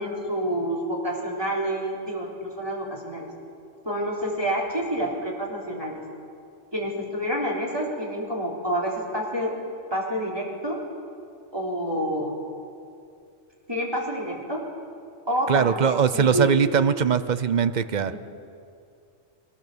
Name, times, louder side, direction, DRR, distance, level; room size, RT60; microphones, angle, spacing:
voice 1, 0.0-3.3 3.8-6.0 6.7-9.5 9.9-10.8 11.5-12.3 13.7-14.6 15.3-16.5 18.1-18.2, equal, 20° right, -3 dB, 3.8 m, -28 dB
voice 2, 15.5-18.1, right 6 dB, 45° right, 13 dB, 0.7 m, -21 dB
22.5 x 18.5 x 6.9 m, 2.4 s
omnidirectional pair, 1.4 m